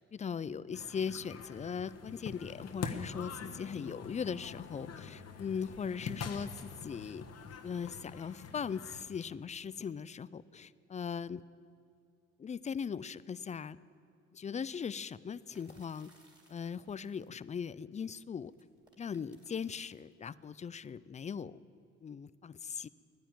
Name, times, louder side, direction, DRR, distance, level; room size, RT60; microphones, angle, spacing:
voice 1, 0.0-7.3 7.6-11.4 12.4-13.8 14.3-16.1 16.5-18.5 19.0-21.6 22.0-22.9, left 6 dB, 25° left, 18 dB, 0.4 m, -39 dB
sound 1, 0.7-9.0, left 5 dB, 50° left, 1.3 m, -45 dB
sound 2, 15.5-17.6 18.4-20.1, right 1 dB, 15° right, 2.8 m, -66 dB
11.5 x 10.0 x 9.1 m, 2.4 s
supercardioid pair, 70°, 32 cm